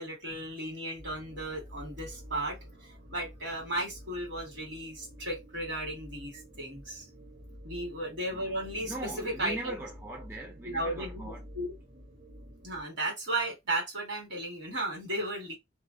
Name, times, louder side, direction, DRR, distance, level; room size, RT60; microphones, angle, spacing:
voice 1, 0.0-7.1 7.6-8.9 9.2-9.7 10.6-11.7 12.6-15.5, right 1 dB, 60° right, 1.3 m, -35 dB
sound 1, 0.9-12.8, equal, 75° right, 1.0 m, -49 dB
voice 2, 8.3-11.5, right 1 dB, 15° right, 0.4 m, -41 dB
2.4 x 2.0 x 2.5 m
head